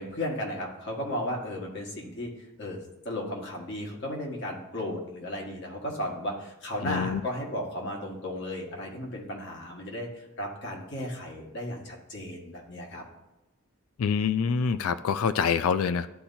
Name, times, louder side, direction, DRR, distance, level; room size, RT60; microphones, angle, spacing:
voice 1, 0.0-2.3 2.6-13.0, left 1 dB, 55° left, -1 dB, 1.5 m, -35 dB
voice 2, 6.8-7.2 14.0-16.1, left 6 dB, 80° left, 13 dB, 0.4 m, -26 dB
11.5 x 4.3 x 2.7 m, 1.0 s
head